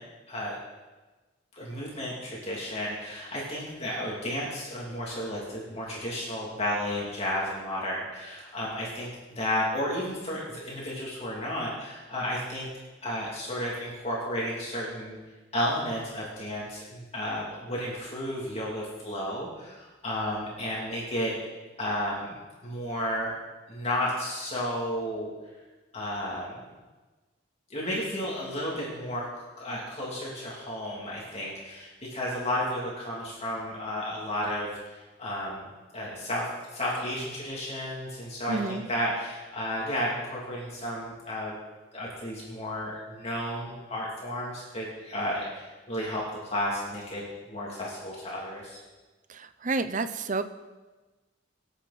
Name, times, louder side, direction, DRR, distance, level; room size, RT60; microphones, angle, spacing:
voice 1, 1.6-12.7 13.0-15.2 15.5-21.3 21.8-23.3 23.7-25.3 25.9-26.5 27.7-29.3 29.6-35.7 35.9-41.5 41.9-47.2 47.5-48.8, left 1 dB, 30° left, -5 dB, 2.9 m, -32 dB
voice 2, 38.5-38.9 49.3-50.4, right 3 dB, 40° right, 11 dB, 0.7 m, -30 dB
24.5 x 8.4 x 4.3 m, 1.2 s
head